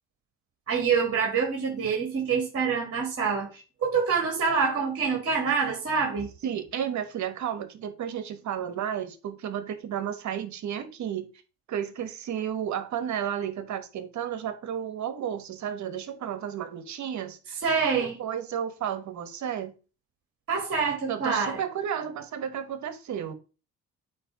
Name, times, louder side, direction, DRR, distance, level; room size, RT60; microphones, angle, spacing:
voice 1, 0.7-6.3 17.6-18.2 20.5-21.6, right 5 dB, 50° right, 1.9 m, -26 dB
voice 2, 6.4-11.3 11.7-17.6 18.2-19.7 21.1-23.3, right 9 dB, 70° right, 1.2 m, -32 dB
8.6 x 2.9 x 4.6 m
cardioid pair, 90°, 30 cm